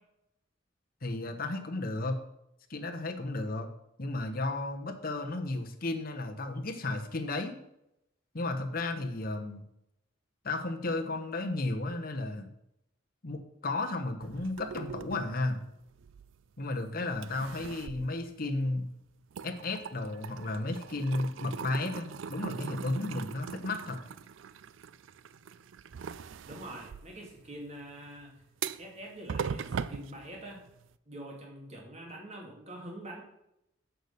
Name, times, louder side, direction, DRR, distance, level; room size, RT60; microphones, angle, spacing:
voice 1, 1.0-2.2 2.7-3.7 4.0-7.6 8.3-9.6 10.4-12.5 13.2-15.7 16.6-18.9 19.4-24.0, left 2 dB, 50° left, 4 dB, 1.0 m, -33 dB
sound 1, 14.2-16.7 17.1-18.9 19.2-30.9, right 6 dB, 75° right, 0.4 m, -41 dB
voice 2, 26.5-28.4 28.8-30.6 31.1-33.2, right 1 dB, 35° right, -1 dB, 2.3 m, -45 dB
6.7 x 6.3 x 6.6 m, 0.83 s
head